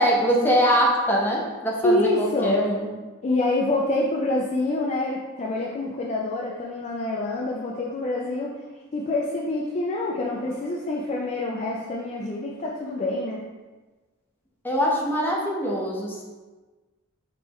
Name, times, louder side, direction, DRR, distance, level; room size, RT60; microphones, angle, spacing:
voice 1, 0.0-2.9 14.6-16.2, equal, 10° left, -3 dB, 0.8 m, -22 dB
voice 2, 1.8-2.6 3.2-8.5 8.9-13.4, left 2 dB, 30° left, -3 dB, 0.4 m, -26 dB
5.3 x 3.3 x 3.0 m, 1.3 s
head